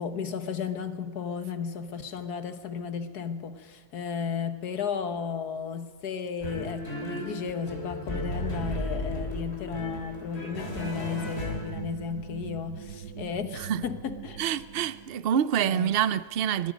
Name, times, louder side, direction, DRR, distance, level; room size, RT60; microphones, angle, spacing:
voice 1, 0.0-14.4 15.6-16.0, left 6 dB, 85° left, 1.8 m, -34 dB
sound 1, 6.4-12.2, left 1 dB, 40° left, 4.0 m, -34 dB
sound 2, 10.5-15.2, right 9 dB, 75° right, 1.4 m, -42 dB
voice 2, 13.5-13.8 14.4-16.7, right 9 dB, 55° right, 0.7 m, -27 dB
23.0 x 22.0 x 5.3 m
omnidirectional pair, 1.6 m